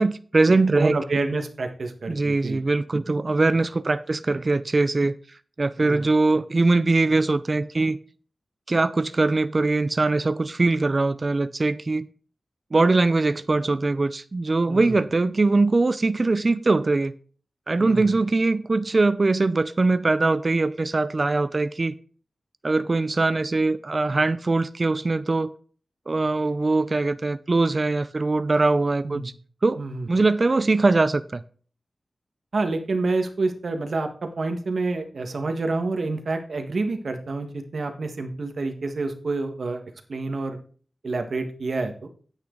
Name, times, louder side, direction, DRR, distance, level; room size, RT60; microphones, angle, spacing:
voice 1, 0.0-1.0 2.1-5.2 5.6-8.0 8.7-12.1 12.7-17.1 17.7-21.9 22.6-25.5 26.1-29.2 29.6-29.8 30.1-31.4, right 3 dB, 45° right, 0.5 m, -22 dB
voice 2, 0.7-2.6 5.8-6.1 14.7-15.0 17.8-18.2 29.0-29.3 29.8-30.1 32.5-39.8 40.1-40.6 41.0-42.1, right 3 dB, 70° right, 1.5 m, -28 dB
9.8 x 8.7 x 3.9 m
wide cardioid pair, 75°, 0 cm